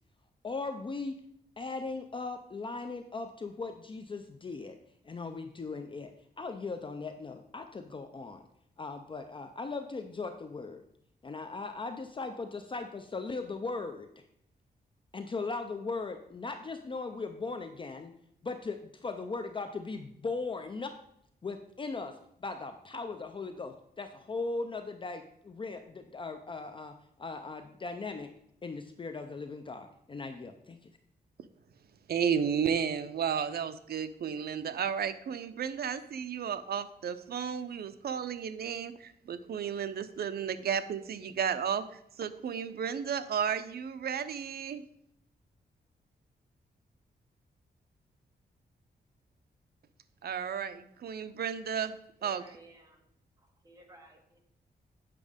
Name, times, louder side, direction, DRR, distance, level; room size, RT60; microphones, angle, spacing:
voice 1, 0.4-1.2 1.6-4.8 5.0-8.4 8.8-10.8 11.2-14.1 15.1-18.1 18.4-20.9 21.4-28.3 28.6-30.9, left 3 dB, 30° left, 7 dB, 0.5 m, -38 dB
voice 2, 32.1-41.9 42.2-44.8 50.2-52.0 52.2-52.4, right 7 dB, 70° right, 12 dB, 0.6 m, -33 dB
voice 3, 52.2-53.0 53.6-54.4, right 1 dB, 20° right, 2 dB, 1.7 m, -55 dB
8.4 x 6.2 x 5.0 m, 0.73 s
wide cardioid pair, 140°, 17 cm